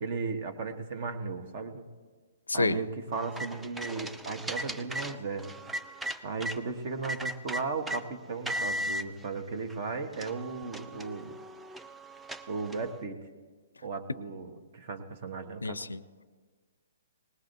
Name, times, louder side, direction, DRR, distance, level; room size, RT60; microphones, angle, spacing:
voice 1, 0.0-1.9 2.5-5.5 6.2-11.4 12.5-13.2 13.8-15.8, right 4 dB, 50° right, 7 dB, 1.4 m, -36 dB
voice 2, 2.5-2.8 15.6-16.2, left 3 dB, 85° left, 17 dB, 0.4 m, -30 dB
sound 1, 3.1-6.6 7.0-8.0 8.5-9.0 9.7-9.8 10.1-13.0, equal, 5° right, 0.4 m, -37 dB
19.5 x 19.5 x 2.7 m, 1.5 s
figure-of-eight pair, 130°, 0 cm